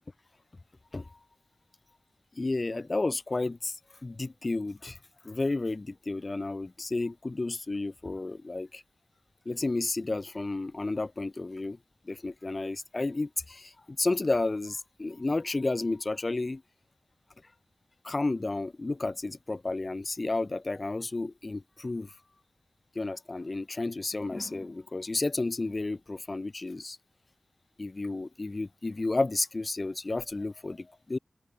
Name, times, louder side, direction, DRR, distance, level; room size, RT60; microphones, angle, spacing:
voice 1, 2.3-5.0 5.2-8.8 9.4-11.8 12.0-16.6 18.0-22.1 22.9-27.0 27.8-31.2, left 2 dB, 35° left, 0.9 m, -32 dB
open air
wide cardioid pair, 75°, 0 cm